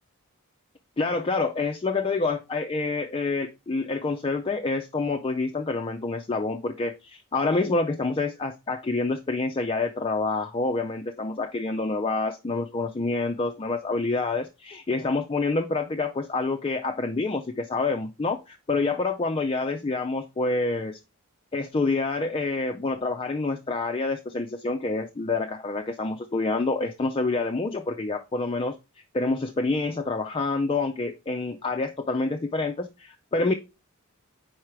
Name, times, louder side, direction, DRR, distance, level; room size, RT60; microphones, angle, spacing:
voice 1, 1.0-21.0 21.5-28.8 29.1-33.5, left 3 dB, 25° left, 4 dB, 0.4 m, -27 dB
4.8 x 4.4 x 4.6 m, 0.27 s
head